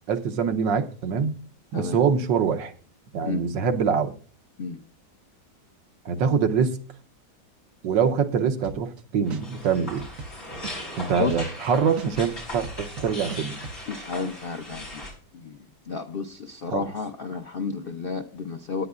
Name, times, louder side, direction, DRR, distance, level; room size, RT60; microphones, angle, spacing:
voice 1, 0.1-1.4 1.7-2.7 3.1-4.1 6.0-6.8 7.8-10.0 11.0-13.6 16.7-16.9, right 6 dB, 80° right, 1.6 m, -24 dB
sound 1, 8.6-9.0 9.3-11.7 12.0-13.8, right 4 dB, 55° right, 1.1 m, -38 dB
sound 2, 9.3-15.1, left 1 dB, 50° left, 5.8 m, -38 dB
voice 2, 13.9-15.0 15.3-15.6 15.9-18.9, left 5 dB, 65° left, 0.5 m, -31 dB
19.0 x 9.5 x 2.5 m
omnidirectional pair, 2.0 m